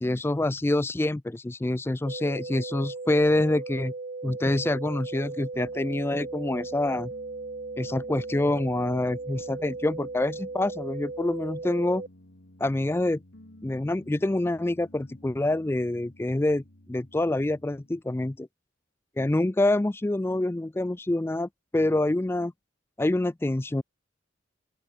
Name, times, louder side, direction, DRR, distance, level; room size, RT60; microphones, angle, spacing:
voice 1, 0.0-3.9 4.2-7.1 7.8-12.0 12.6-13.2 13.6-16.6 16.9-18.5 19.2-22.5 23.0-23.8, left 1 dB, 10° left, 0.3 m, -26 dB
sound 1, 2.1-12.1, right 3 dB, 40° right, 0.6 m, -37 dB
Piano, 5.5-18.0, left 1 dB, 70° left, 2.2 m, -54 dB
open air
head